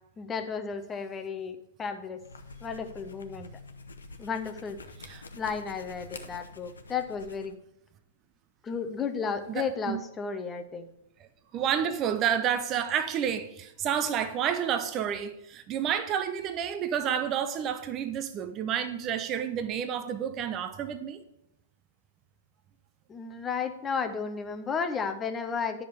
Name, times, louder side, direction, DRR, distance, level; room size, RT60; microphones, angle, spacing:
voice 1, 0.2-2.2 2.6-3.5 4.2-4.8 5.3-7.6 8.6-10.9 23.1-25.8, left 6 dB, 20° left, 1.0 m, -33 dB
sound 1, 2.2-7.5, left 3 dB, 75° left, 1.0 m, -47 dB
voice 2, 9.5-10.0 11.2-11.3 11.5-21.2, right 8 dB, 30° right, 0.8 m, -30 dB
10.5 x 6.2 x 5.0 m
figure-of-eight pair, 105°, 0 cm